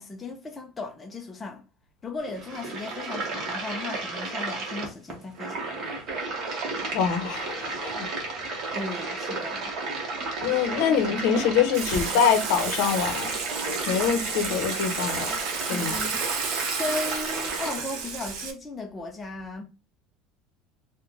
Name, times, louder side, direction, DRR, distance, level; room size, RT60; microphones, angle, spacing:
voice 1, 0.0-1.6 2.0-6.0 8.7-9.7 10.9-11.0 11.9-12.0 15.7-16.2 16.8-19.6, left 2 dB, 10° left, 0.4 m, -36 dB
sound 1, 2.2-17.8, right 3 dB, 35° right, 1.0 m, -33 dB
voice 2, 6.9-8.1 10.4-15.4 15.7-16.0, left 7 dB, 60° left, 0.7 m, -25 dB
Water / Water tap faucet / Sink (filling or washing), 11.7-18.5, right 5 dB, 60° right, 0.7 m, -32 dB
3.2 x 2.1 x 3.7 m
cardioid pair, 180°, 0 cm